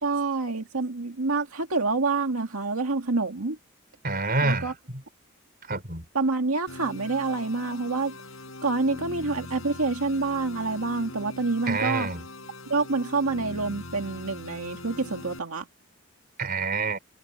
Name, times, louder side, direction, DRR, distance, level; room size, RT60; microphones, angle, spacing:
voice 1, 0.0-3.6 4.4-4.7 6.1-8.1 8.6-12.1 12.7-15.7, right 3 dB, 90° right, 2.1 m, -27 dB
voice 2, 4.0-4.7 5.7-6.0 11.7-12.2 16.4-17.0, right 3 dB, 45° right, 4.9 m, -27 dB
sound 1, 6.7-15.4, left 2 dB, 70° left, 6.4 m, -41 dB
open air
head